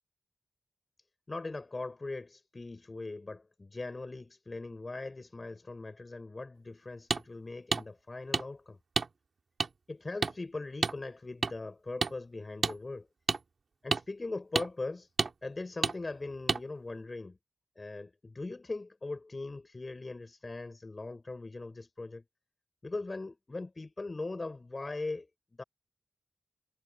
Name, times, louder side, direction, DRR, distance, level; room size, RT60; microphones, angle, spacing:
voice 1, 1.3-8.8 9.9-13.1 13.8-15.1 15.4-17.4 17.8-22.2 22.8-25.3 25.6-25.7, left 3 dB, 35° left, 6.6 m, -40 dB
sound 1, 7.1-7.2 7.7-7.8 8.3-8.4 9.0-9.1 9.6-9.7 10.2-10.3 10.8-11.0 11.4-11.5 12.0-12.1 12.6-12.8 13.3-13.4 13.9-14.0 14.6-14.7 15.2-15.3 15.8-16.0 16.5-16.6, right 4 dB, 60° right, 2.0 m, -29 dB
wide cardioid pair, 90°, 0 cm